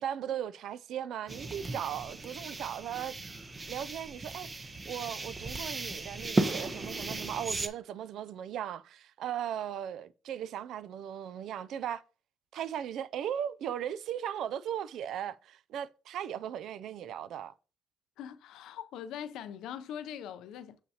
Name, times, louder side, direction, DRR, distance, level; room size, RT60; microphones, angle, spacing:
voice 1, 0.0-3.1 3.7-12.0 12.5-17.5, right 9 dB, 75° right, 0.3 m, -37 dB
sound 1, 1.3-7.7, right 2 dB, 30° right, 0.8 m, -36 dB
voice 2, 18.2-20.8, left 9 dB, 90° left, 0.5 m, -42 dB
6.6 x 5.5 x 2.8 m
cardioid pair, 90°, 0 cm